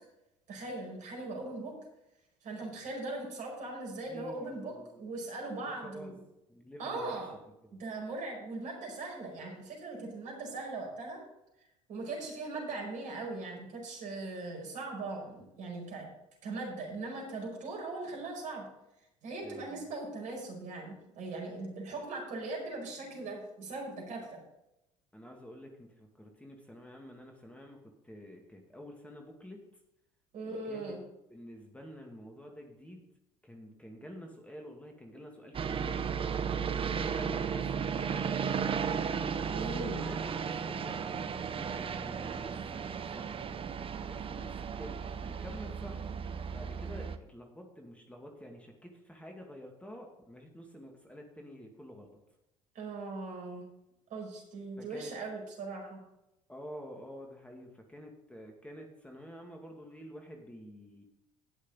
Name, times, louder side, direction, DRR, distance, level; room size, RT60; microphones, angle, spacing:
voice 1, 0.5-1.7 2.4-6.2 6.8-7.3 7.7-11.2 11.9-16.1 16.4-18.6 19.2-24.4 30.3-31.0 39.5-40.0 52.7-53.6 54.1-56.0, right 3 dB, 55° right, 0 dB, 5.1 m, -40 dB
voice 2, 4.0-5.0 5.7-6.1 6.5-7.2 7.6-7.8 19.4-19.9 21.9-22.0 24.2-24.3 25.1-27.8 28.0-29.7 30.4-31.0 31.3-33.1 33.4-36.1 36.6-38.3 39.5-40.2 40.6-42.9 43.1-43.4 44.0-46.0 46.5-52.1 54.8-55.1 56.5-61.1, equal, 10° left, 1 dB, 2.2 m, -48 dB
sound 1, 35.5-47.2, right 6 dB, 35° right, 0.9 m, -35 dB
18.0 x 6.4 x 3.9 m, 0.87 s
hypercardioid pair, 60°, 16 cm